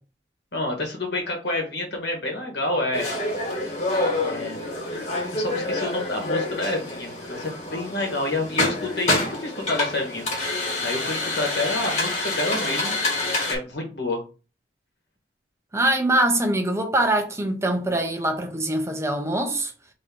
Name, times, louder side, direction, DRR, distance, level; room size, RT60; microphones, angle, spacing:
voice 1, 0.5-3.1 4.2-4.6 5.3-10.2 10.8-13.0 13.5-14.2, left 2 dB, 60° left, 1.4 m, -28 dB
sound 1, 2.9-13.6, left 2 dB, 40° left, 1.7 m, -27 dB
voice 2, 15.7-19.7, right 1 dB, 15° right, 0.7 m, -23 dB
3.7 x 3.0 x 4.4 m
head